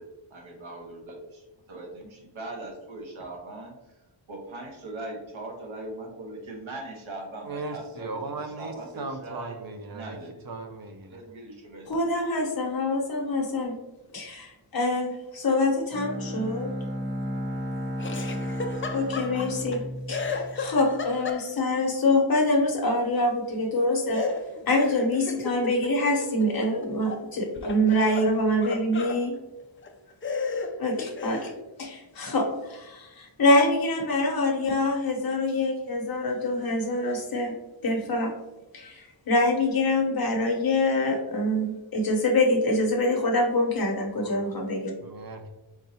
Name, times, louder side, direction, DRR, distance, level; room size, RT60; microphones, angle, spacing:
voice 1, 0.0-3.9 4.3-9.5 9.9-10.4 11.1-12.1 12.4-12.5, right 2 dB, 75° right, 1.2 m, -40 dB
voice 2, 7.4-10.2 10.4-11.2 44.2-44.6 45.0-45.5, right 3 dB, 45° right, 0.6 m, -37 dB
voice 3, 11.9-13.8 14.1-16.7 18.9-19.8 20.1-24.3 24.7-29.4 30.8-31.5 31.8-37.5 37.8-38.3 38.7-44.9, left 1 dB, 45° left, 1.0 m, -25 dB
Bowed string instrument, 15.9-20.9, equal, 25° right, 1.1 m, -33 dB
Laughter, 18.0-19.8 20.1-21.8 24.1-27.2 27.6-29.2 29.8-29.9 30.2-31.6, left 4 dB, 30° left, 0.4 m, -34 dB
4.4 x 3.8 x 2.8 m
wide cardioid pair, 135°, 48 cm